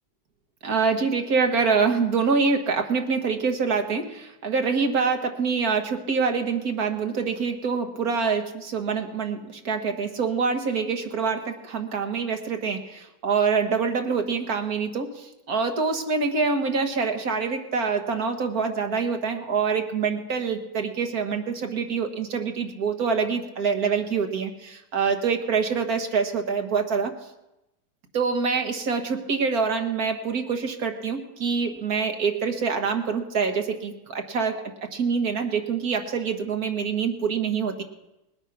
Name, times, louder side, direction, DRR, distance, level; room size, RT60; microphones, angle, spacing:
voice 1, 0.6-15.1 15.5-27.1 28.1-34.6 34.9-37.8, right 5 dB, 65° right, 5 dB, 1.9 m, -25 dB
20.0 x 9.0 x 5.9 m, 0.94 s
omnidirectional pair, 1.8 m